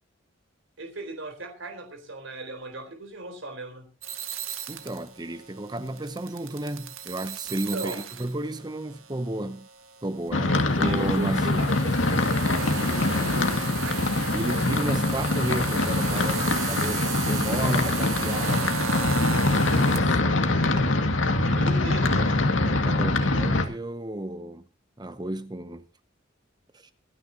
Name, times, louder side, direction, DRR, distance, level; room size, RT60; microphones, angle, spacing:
voice 1, 0.8-3.9 7.5-8.0 10.5-14.1 19.9-20.9 21.3-22.3, right 2 dB, 70° right, 4.1 m, -38 dB
sound 1, 4.0-20.0, right 6 dB, 85° right, 1.7 m, -35 dB
voice 2, 4.7-9.7 10.0-11.7 14.3-19.5 20.0-20.2 22.6-24.6 25.0-25.8 26.7-26.9, right 1 dB, 20° right, 0.7 m, -32 dB
sound 2, 10.3-23.7, left 2 dB, 75° left, 2.1 m, -24 dB
26.5 x 10.0 x 2.9 m
head